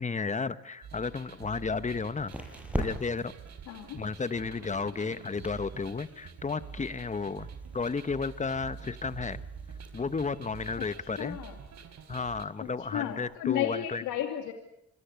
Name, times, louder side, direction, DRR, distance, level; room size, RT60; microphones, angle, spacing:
voice 1, 0.0-2.3 2.7-3.3 3.9-7.5 7.7-9.4 9.9-11.4 12.1-14.0, left 4 dB, 25° left, 13 dB, 1.3 m, -33 dB
sound 1, 0.8-12.5, right 6 dB, 60° right, 3.7 m, -46 dB
sound 2, 1.0-13.4, equal, 5° right, 7.6 m, -45 dB
voice 2, 3.7-4.0 11.2-11.5 12.9-14.5, left 11 dB, 90° left, 4 dB, 2.8 m, -32 dB
27.0 x 22.5 x 8.4 m, 0.80 s
cardioid pair, 90°, 30 cm